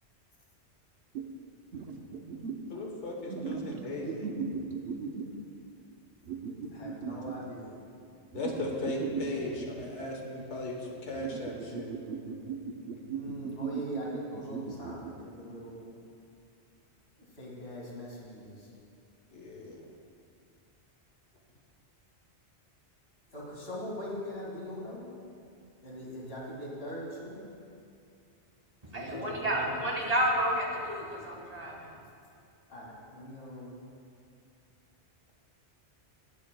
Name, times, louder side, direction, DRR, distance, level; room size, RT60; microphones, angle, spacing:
sound 1, 1.1-1.3 1.7-2.7 3.3-5.4 6.3-7.4 8.3-10.1 11.1-15.1, right 5 dB, 65° right, 0.9 m, -37 dB
voice 1, 2.7-4.4 8.3-11.9 19.3-19.8, left 1 dB, 85° left, 0 dB, 1.4 m, -37 dB
voice 2, 6.7-7.8 13.1-15.9 17.4-18.7 23.3-25.1 25.8-27.4 28.9-29.9 32.7-33.8, equal, 60° left, -4 dB, 2.3 m, -41 dB
voice 3, 28.8-31.9, equal, 35° right, -2 dB, 1.4 m, -30 dB
18.5 x 7.4 x 2.2 m, 2.5 s
omnidirectional pair, 1.2 m